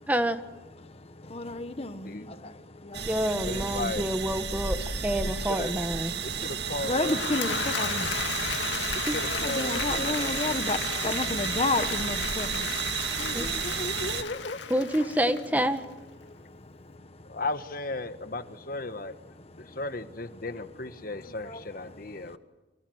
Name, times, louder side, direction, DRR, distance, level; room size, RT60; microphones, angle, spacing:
voice 1, 0.1-0.4 3.1-6.1 9.1-9.2 13.3-13.5 14.7-15.8, equal, 10° right, 1.3 m, -28 dB
voice 2, 1.2-3.1 6.8-8.1 9.4-12.7 13.1-13.4 14.1-14.2 21.4-21.9, left 2 dB, 35° left, 1.2 m, -31 dB
sound 1, 2.9-14.2, right 6 dB, 65° right, 2.2 m, -32 dB
voice 3, 3.4-4.0 5.2-5.3 5.6-5.7 6.2-7.2 9.1-10.4 13.2-14.8 17.3-19.1 19.8-22.4, left 2 dB, 50° left, 1.5 m, -35 dB
Applause / Crowd, 6.7-15.9, left 6 dB, 85° left, 2.3 m, -34 dB
29.5 x 25.0 x 8.0 m
head